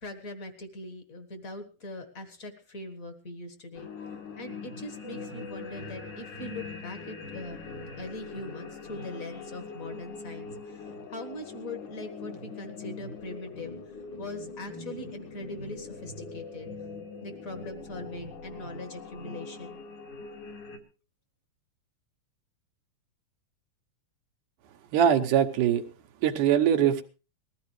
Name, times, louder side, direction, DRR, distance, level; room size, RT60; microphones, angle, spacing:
voice 1, 0.0-3.9 4.4-7.6 8.0-16.7 17.2-19.8, left 1 dB, 35° left, 8 dB, 1.4 m, -41 dB
sound 1, 3.7-20.8, left 4 dB, 70° left, 3.4 m, -42 dB
voice 2, 24.9-25.8 26.2-27.0, right 9 dB, 85° right, 7 dB, 2.6 m, -22 dB
20.5 x 14.5 x 3.2 m, 0.33 s
omnidirectional pair, 3.6 m